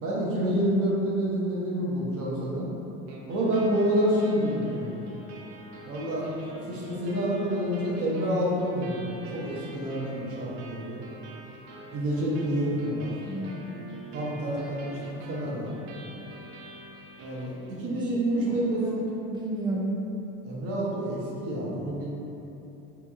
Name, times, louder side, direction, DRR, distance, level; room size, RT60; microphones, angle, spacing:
voice 1, 0.0-2.7 3.3-4.9 5.9-11.0 11.9-13.1 14.1-15.9 17.2-18.9 20.4-22.1, equal, 45° right, -5 dB, 0.8 m, -28 dB
sound 1, 3.1-18.1, right 2 dB, 85° right, 0.5 m, -46 dB
voice 2, 13.3-13.9 18.0-20.0, right 2 dB, 15° right, -4 dB, 0.4 m, -34 dB
2.8 x 2.6 x 2.3 m, 3.0 s
supercardioid pair, 105°, 32 cm